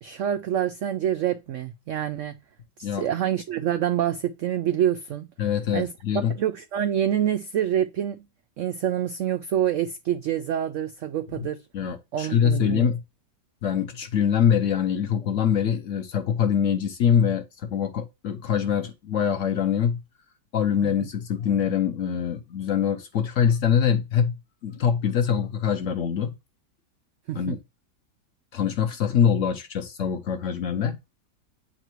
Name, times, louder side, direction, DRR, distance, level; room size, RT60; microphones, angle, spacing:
voice 1, 0.0-2.3 2.8-5.3 5.7-5.9 6.1-8.2 8.6-11.6 12.1-12.9 20.8-20.9 27.3-27.6, right 10 dB, 80° right, 0.7 m, -26 dB
voice 2, 5.4-6.3 11.7-13.0 13.6-20.0 20.5-24.3 24.6-26.3 27.3-27.6 28.5-31.0, left 8 dB, 60° left, 0.9 m, -24 dB
8.9 x 4.2 x 3.0 m
omnidirectional pair, 1.8 m